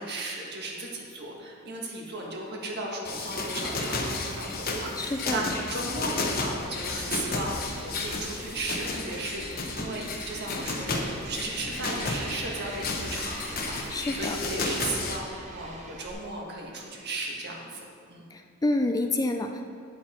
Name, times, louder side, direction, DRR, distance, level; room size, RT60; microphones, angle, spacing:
voice 1, 0.0-9.5 9.8-17.8 18.1-18.2, right 2 dB, 55° right, -1 dB, 1.6 m, -35 dB
sound 1, 3.0-15.2, left 3 dB, 45° left, 0.9 m, -33 dB
voice 2, 5.0-5.4 13.9-14.4 18.3-19.6, left 2 dB, 20° left, 5 dB, 0.3 m, -28 dB
sound 2, 6.6-16.1, right 2 dB, 35° right, 0.8 m, -44 dB
9.7 x 7.4 x 4.3 m, 2.3 s
head